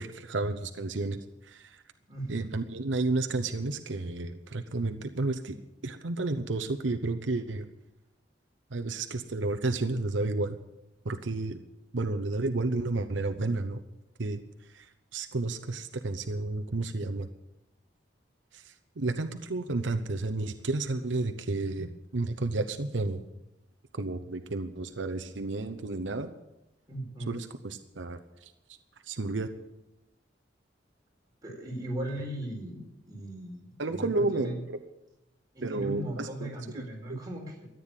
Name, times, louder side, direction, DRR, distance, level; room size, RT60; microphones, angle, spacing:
voice 1, 0.0-1.8 2.3-5.6 5.8-7.7 8.7-10.6 11.0-11.6 11.9-13.8 14.2-14.4 14.7-17.3 18.5-23.2 23.9-26.3 27.3-28.5 29.1-29.5 33.8-34.8 35.6-36.8 37.1-37.2, right 2 dB, 90° right, 7 dB, 0.9 m, -31 dB
voice 2, 2.1-2.5 26.9-27.4 31.4-34.6 35.5-37.7, right 1 dB, 20° right, -2 dB, 4.5 m, -38 dB
14.0 x 9.3 x 9.0 m, 0.94 s
head